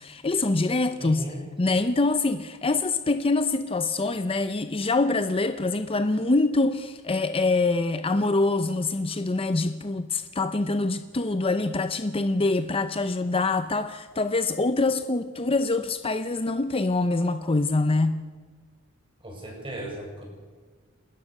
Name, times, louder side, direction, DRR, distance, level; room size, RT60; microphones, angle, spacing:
voice 1, 0.0-1.3 1.6-18.2, left 3 dB, 25° left, 0.7 m, -25 dB
voice 2, 1.0-1.4 19.2-20.2, right 1 dB, 25° right, 7.5 m, -36 dB
30.0 x 13.5 x 6.6 m
head